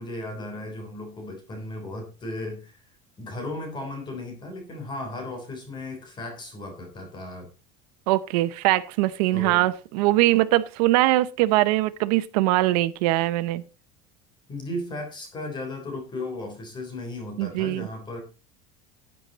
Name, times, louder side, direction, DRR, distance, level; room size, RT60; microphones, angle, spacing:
voice 1, 0.0-2.8 3.2-7.5 9.3-9.7 14.5-18.2, left 2 dB, 25° left, 4 dB, 3.6 m, -35 dB
voice 2, 8.1-13.6 17.4-17.9, right 17 dB, 90° right, 10 dB, 0.8 m, -22 dB
11.5 x 9.1 x 4.0 m, 0.33 s
cardioid pair, 160°, 20 cm